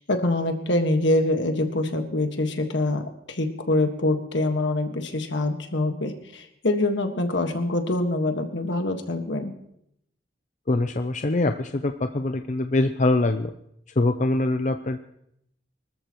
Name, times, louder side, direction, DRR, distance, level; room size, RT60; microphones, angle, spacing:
voice 1, 0.0-3.0 3.3-9.5, left 2 dB, 70° left, 5 dB, 1.6 m, -25 dB
voice 2, 10.7-13.5 14.0-15.0, left 2 dB, 40° left, 7 dB, 0.5 m, -23 dB
24.5 x 13.5 x 3.1 m, 0.75 s
head